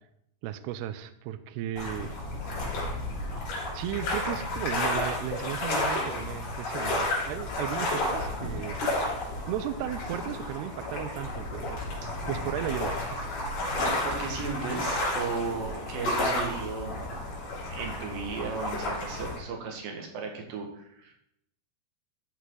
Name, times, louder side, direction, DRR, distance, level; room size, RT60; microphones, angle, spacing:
voice 1, 0.4-2.1 3.7-8.8 9.5-11.8 12.3-13.2, right 11 dB, 80° right, 12 dB, 2.4 m, -35 dB
sound 1, 1.8-19.4, left 2 dB, 65° left, 5.2 m, -32 dB
voice 2, 13.8-17.0 17.7-21.1, right 5 dB, 60° right, 2 dB, 2.9 m, -35 dB
13.5 x 6.1 x 3.9 m, 0.75 s
omnidirectional pair, 5.3 m